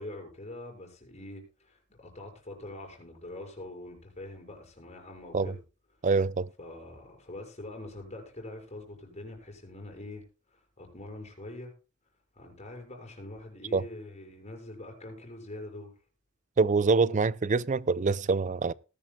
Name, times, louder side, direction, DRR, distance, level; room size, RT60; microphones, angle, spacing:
voice 1, 0.0-5.6 6.6-11.7 12.3-15.9, left 1 dB, 30° left, 6.2 m, -44 dB
voice 2, 6.0-6.5 13.7-13.8 16.6-18.7, right 4 dB, 35° right, 0.5 m, -25 dB
19.0 x 11.0 x 2.3 m
head